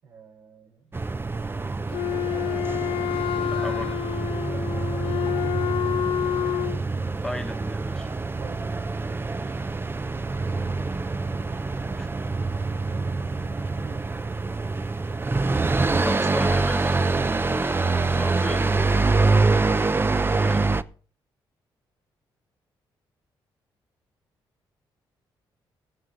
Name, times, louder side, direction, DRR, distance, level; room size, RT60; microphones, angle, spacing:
voice 1, 0.0-1.9 4.4-6.0 8.4-9.6 10.1-11.1 11.5-15.2, right 5 dB, 85° right, 5.4 m, -50 dB
sound 1, 0.9-20.8, right 3 dB, 25° right, 0.6 m, -25 dB
Wind instrument woodwind instrument, 1.9-6.8, left 11 dB, 70° left, 0.6 m, -28 dB
voice 2, 3.3-3.9 7.2-8.1 12.0-12.1 16.0-17.0 17.5-18.8 20.4-20.7, left 1 dB, 5° left, 1.2 m, -35 dB
21.0 x 7.4 x 4.0 m
supercardioid pair, 65°, 9 cm